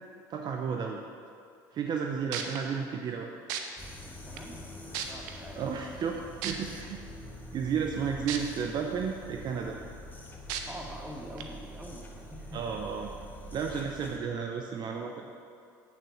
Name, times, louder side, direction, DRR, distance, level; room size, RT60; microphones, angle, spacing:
voice 1, 0.3-1.0 1.7-3.3 5.6-7.0 7.5-9.8 12.5-13.1 13.5-15.3, right 6 dB, 50° right, 2 dB, 0.8 m, -33 dB
sound 1, 2.0-2.1 2.3-2.6 3.5-3.6 4.4-4.5 4.9-5.3 6.4-6.5 8.3-8.4 8.9-9.0 10.5-10.6 11.4-11.5, right 10 dB, 80° right, 0.8 m, -33 dB
sound 2, 3.8-14.2, equal, 20° left, 1.6 m, -46 dB
voice 2, 4.0-5.6 10.7-12.6 13.0-13.1, equal, 15° right, 0 dB, 1.8 m, -45 dB
8.8 x 7.1 x 6.0 m, 2.3 s
hypercardioid pair, 75°, 10 cm